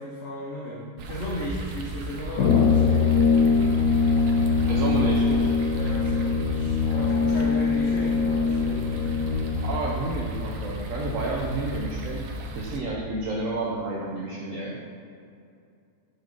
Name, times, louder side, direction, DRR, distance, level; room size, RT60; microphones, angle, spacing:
voice 1, 0.0-3.2 5.7-9.1, left 1 dB, 50° left, -5 dB, 1.2 m, -36 dB
sound 1, 1.0-12.8, right 2 dB, 80° right, 1.4 m, -35 dB
Brass instrument, 2.4-9.8, left 5 dB, 70° left, 1.1 m, -22 dB
voice 2, 4.7-5.5 9.6-12.2 12.6-14.8, right 2 dB, 60° right, -3 dB, 1.2 m, -30 dB
6.6 x 6.1 x 5.2 m, 2.4 s
omnidirectional pair, 1.7 m